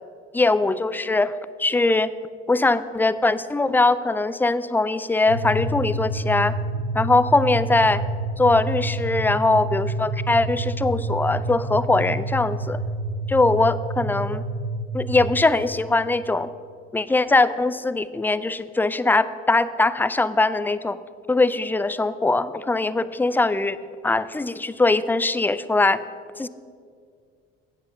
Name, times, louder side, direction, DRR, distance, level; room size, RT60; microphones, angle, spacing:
voice 1, 0.3-2.1 2.5-6.5 6.9-8.0 8.4-12.8 13.3-14.4 14.9-16.5 16.9-21.0 21.3-23.8 24.0-26.0 26.4-26.5, left 3 dB, 5° left, 15 dB, 0.3 m, -21 dB
sound 1, 5.3-15.5, right 2 dB, 90° right, 0.8 m, -28 dB
8.2 x 7.9 x 6.4 m, 2.2 s
supercardioid pair, 70°, 30 cm